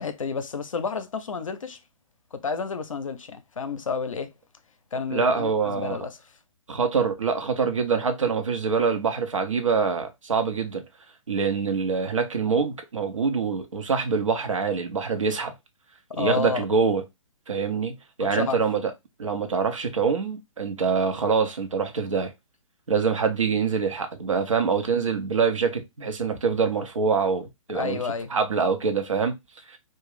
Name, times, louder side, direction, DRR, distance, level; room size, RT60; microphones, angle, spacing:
voice 1, 0.0-1.8 2.3-4.3 4.9-6.2 16.1-16.6 18.2-18.6 27.7-28.3, left 5 dB, 75° left, 0.5 m, -30 dB
voice 2, 5.1-6.0 6.7-10.8 11.3-15.5 16.2-17.0 17.5-18.8 19.2-22.3 22.9-28.0 28.3-29.4 29.7-29.8, right 5 dB, 70° right, 0.7 m, -25 dB
2.5 x 2.2 x 3.2 m
figure-of-eight pair, 130°, 17 cm